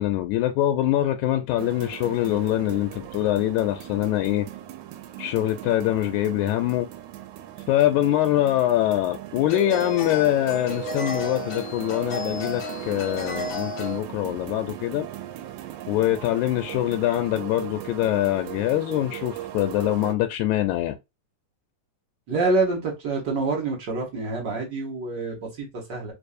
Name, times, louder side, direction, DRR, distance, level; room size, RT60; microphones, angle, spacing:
voice 1, 0.0-4.5 5.2-6.9 7.7-15.1 15.9-21.0, left 14 dB, 85° left, 1.9 m, -24 dB
sound 1, 1.6-20.2, right 13 dB, 90° right, 2.0 m, -38 dB
sound 2, 8.1-8.2 9.5-14.0, left 1 dB, 60° left, 1.4 m, -33 dB
voice 2, 22.3-26.1, right 3 dB, 50° right, 1.4 m, -26 dB
4.6 x 2.7 x 2.5 m
omnidirectional pair, 3.4 m